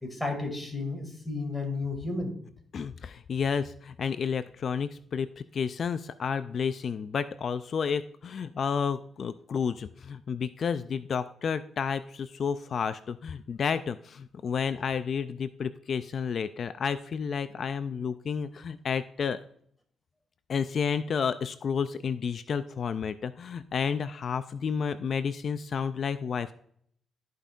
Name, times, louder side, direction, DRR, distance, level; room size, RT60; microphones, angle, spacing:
voice 1, 0.0-2.4, left 3 dB, 5° left, 2 dB, 2.1 m, -32 dB
voice 2, 2.7-5.3 5.5-19.4 20.5-26.5, left 6 dB, 55° left, 12 dB, 0.3 m, -31 dB
13.5 x 5.2 x 2.4 m, 0.66 s
cardioid pair, 105°, 0 cm